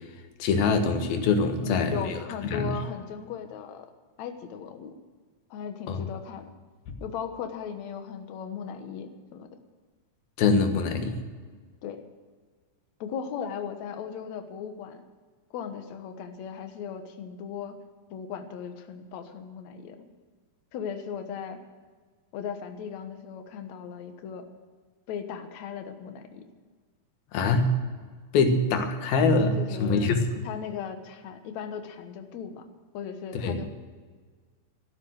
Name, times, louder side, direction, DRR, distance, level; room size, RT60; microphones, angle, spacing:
voice 1, 0.4-1.9 2.4-2.7 5.9-6.0 10.4-11.2 27.3-27.8 28.3-30.2 33.4-33.6, left 3 dB, 85° left, 6 dB, 3.4 m, -24 dB
voice 2, 1.6-3.9 4.2-4.9 5.5-6.5 7.0-9.5 11.8-12.0 13.0-15.0 15.5-17.7 18.1-20.0 20.7-21.6 22.3-24.5 25.1-26.4 29.6-30.1 30.4-32.7 32.9-33.7, left 7 dB, 60° left, 6 dB, 2.2 m, -37 dB
14.0 x 12.0 x 6.5 m, 1.5 s
omnidirectional pair, 4.1 m